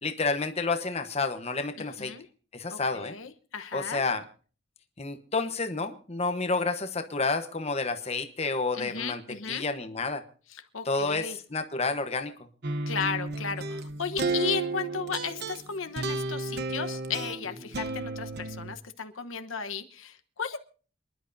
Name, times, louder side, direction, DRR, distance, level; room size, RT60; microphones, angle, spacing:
voice 1, 0.0-2.1 2.5-3.2 3.7-4.2 5.0-9.2 9.5-10.2 10.8-12.3, left 3 dB, 30° left, 7 dB, 1.1 m, -30 dB
voice 2, 1.8-2.3 2.7-4.0 8.7-9.6 10.5-11.4 12.9-20.6, left 6 dB, 80° left, 8 dB, 1.1 m, -35 dB
sound 1, 12.6-18.7, right 2 dB, 50° right, 1.0 m, -33 dB
27.5 x 11.0 x 2.7 m, 0.39 s
head